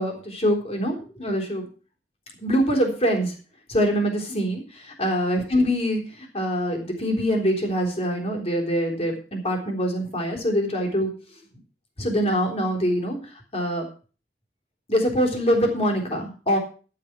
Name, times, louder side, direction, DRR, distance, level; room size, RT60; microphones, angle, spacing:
voice 1, 0.0-1.7 2.4-3.3 3.7-11.1 12.0-13.9 14.9-16.6, equal, 35° left, 1 dB, 3.6 m, -24 dB
12.0 x 7.7 x 6.0 m, 0.37 s
head